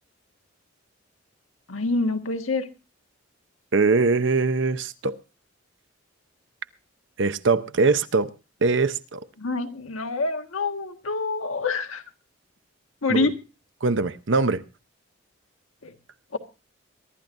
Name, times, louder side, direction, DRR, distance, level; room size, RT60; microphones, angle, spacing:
voice 1, 1.7-2.7 9.4-12.0 13.0-13.3 15.8-15.9 16.3-16.4, left 3 dB, 85° left, 1.5 m, -26 dB
voice 2, 3.7-5.2 7.2-8.3 8.6-9.3 13.1-13.3 13.8-14.6, right 4 dB, 60° right, 0.7 m, -22 dB
23.5 x 12.0 x 2.6 m
head